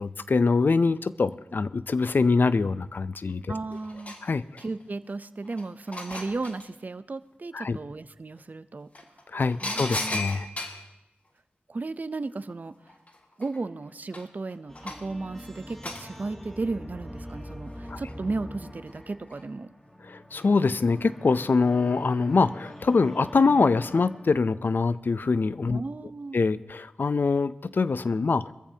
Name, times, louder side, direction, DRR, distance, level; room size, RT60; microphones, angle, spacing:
voice 1, 0.0-3.5 4.2-4.4 7.5-7.8 9.3-10.5 17.9-18.0 20.1-25.8 26.3-28.5, left 4 dB, 60° left, 15 dB, 0.5 m, -24 dB
sound 1, 3.3-3.4 3.7-4.9 5.4-6.7 8.4-8.5 8.9-10.9 12.5-12.6 12.9-15.2 15.8-16.1 17.6-18.4 18.9-19.4 20.4-20.7 21.0-21.1, left 2 dB, 40° left, 1.7 m, -37 dB
voice 2, 3.5-4.2 4.6-8.9 9.6-10.2 11.7-12.7 13.4-19.7 25.7-26.4, right 3 dB, 50° right, 13 dB, 0.6 m, -34 dB
sound 2, 14.7-24.7, equal, 10° left, 1.6 m, -44 dB
23.0 x 14.5 x 2.8 m, 0.91 s
cardioid pair, 55°, 4 cm